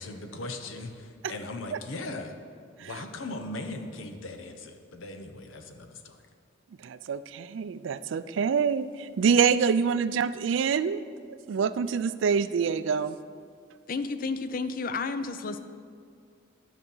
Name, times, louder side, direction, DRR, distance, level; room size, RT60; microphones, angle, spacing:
voice 1, 0.0-2.3 2.8-6.2, left 2 dB, 80° left, 5 dB, 0.8 m, -39 dB
voice 2, 6.8-11.0 11.3-13.2, right 6 dB, 70° right, 14 dB, 0.3 m, -26 dB
voice 3, 13.9-15.6, left 4 dB, 45° left, 10 dB, 0.5 m, -31 dB
11.0 x 5.9 x 5.5 m, 2.2 s
head